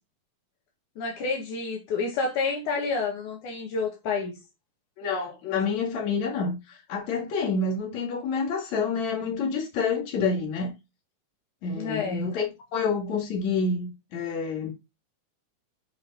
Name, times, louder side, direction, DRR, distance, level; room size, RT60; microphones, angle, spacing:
voice 1, 1.0-4.3 11.7-12.3, left 4 dB, 85° left, 3.4 m, -29 dB
voice 2, 5.0-10.7 11.6-14.7, left 4 dB, 65° left, 3.5 m, -28 dB
8.2 x 4.7 x 5.5 m
omnidirectional pair, 3.5 m